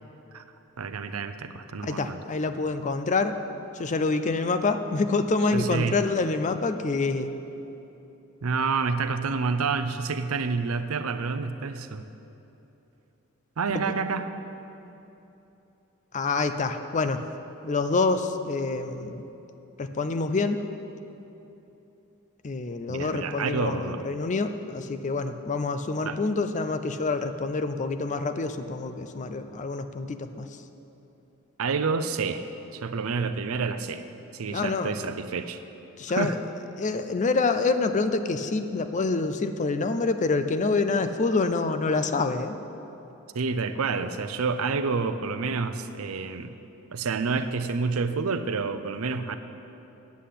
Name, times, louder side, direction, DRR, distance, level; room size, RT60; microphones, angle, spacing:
voice 1, 0.8-2.2 5.5-6.0 8.4-12.0 13.6-14.3 22.9-24.1 26.0-26.2 31.6-32.4 32.7-34.0 34.3-35.6 36.1-36.4 43.3-46.5 46.9-49.4, right 4 dB, 85° right, 10 dB, 0.6 m, -28 dB
voice 2, 1.8-3.4 3.7-7.3 13.7-13.8 16.1-17.2 17.6-19.2 19.8-20.6 22.4-30.6 34.5-34.9 36.0-36.4 36.7-42.6, left 3 dB, 35° left, 9 dB, 0.5 m, -27 dB
8.3 x 7.6 x 8.4 m, 3.0 s
head